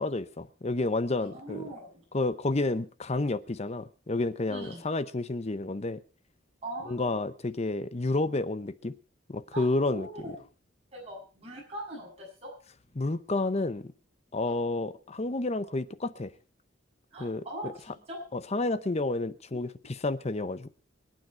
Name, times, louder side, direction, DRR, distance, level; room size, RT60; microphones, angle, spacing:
voice 1, 0.0-1.6 2.1-6.0 6.9-8.9 9.3-10.1 12.9-13.9 14.3-16.3 17.2-17.4 18.3-20.7, left 2 dB, 35° left, 0.7 m, -30 dB
voice 2, 1.2-2.0 4.5-4.9 6.6-7.2 9.5-10.4 10.9-12.5 14.4-14.6 17.1-18.2, right 1 dB, 35° right, 7.8 m, -41 dB
24.0 x 9.4 x 4.6 m
head